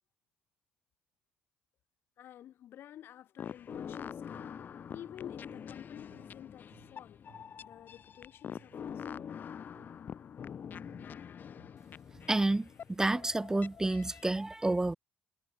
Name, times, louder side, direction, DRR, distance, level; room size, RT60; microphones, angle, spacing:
voice 1, 2.2-4.5 4.9-7.2 7.6-9.1, left 11 dB, 70° left, 1.7 m, -51 dB
sound 1, 3.4-14.3, left 8 dB, 50° left, 3.2 m, -45 dB
sound 2, 3.7-7.7 8.5-10.1 10.7-12.2, right 16 dB, 80° right, 4.0 m, -64 dB
voice 2, 12.3-15.0, right 2 dB, 15° right, 0.5 m, -30 dB
supercardioid pair, 75°, 4 cm